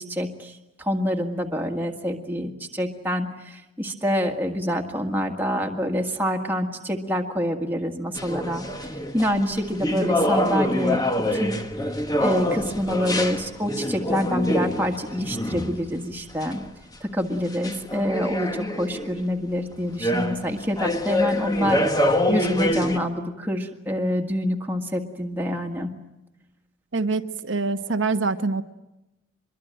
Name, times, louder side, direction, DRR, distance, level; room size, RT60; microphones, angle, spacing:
voice 1, 0.0-8.7 9.1-11.0 11.3-11.6 12.2-16.6 17.0-25.9, equal, 10° right, 1 dB, 1.7 m, -26 dB
sound 1, 8.1-16.7 17.5-19.3 19.7-23.0, left 1 dB, 20° left, 1.3 m, -26 dB
voice 2, 26.9-28.6, right 3 dB, 65° right, 8 dB, 1.0 m, -25 dB
24.5 x 22.5 x 9.0 m, 0.96 s
head